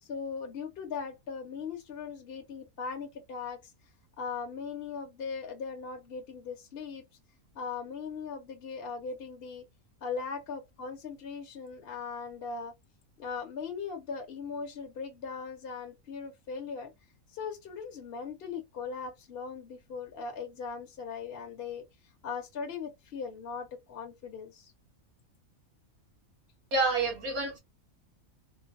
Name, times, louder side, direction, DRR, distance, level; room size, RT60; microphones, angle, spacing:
voice 1, 0.0-3.7 4.2-7.0 7.5-9.6 10.0-12.7 13.2-16.9 17.3-21.8 22.2-24.7, left 5 dB, 50° left, 0.9 m, -39 dB
voice 2, 26.7-27.6, right 3 dB, 90° right, 2.0 m, -28 dB
3.9 x 2.2 x 2.6 m
omnidirectional pair, 1.5 m